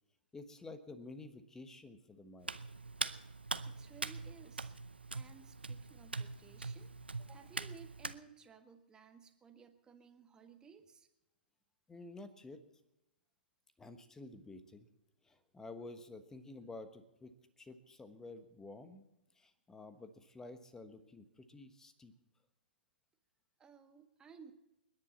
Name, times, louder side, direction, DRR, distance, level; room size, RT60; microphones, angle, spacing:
voice 1, 0.3-2.6 11.9-12.6 13.8-14.9 15.2-19.0 19.3-22.1, left 2 dB, 10° left, 10 dB, 1.3 m, -51 dB
Hands, 2.4-8.2, right 3 dB, 80° right, 0.7 m, -43 dB
voice 2, 3.6-4.7 5.1-11.1 23.6-24.5, right 6 dB, 15° right, 6 dB, 1.6 m, -58 dB
29.5 x 10.5 x 4.2 m, 0.96 s
figure-of-eight pair, 115°, 5 cm